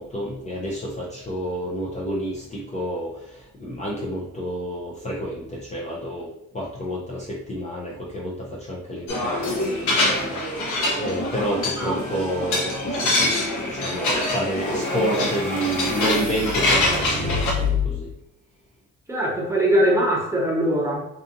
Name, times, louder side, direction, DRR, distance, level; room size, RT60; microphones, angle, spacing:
voice 1, 0.0-10.4 10.7-18.1, equal, 25° left, -4 dB, 0.5 m, -29 dB
sound 1, 9.1-17.5, left 1 dB, 75° left, 0.8 m, -24 dB
sound 2, 13.8-18.1, left 5 dB, 75° right, 0.7 m, -30 dB
voice 2, 19.1-21.0, right 1 dB, 10° right, -3 dB, 0.9 m, -21 dB
2.6 x 2.5 x 2.5 m, 0.81 s
cardioid pair, 90°, 30 cm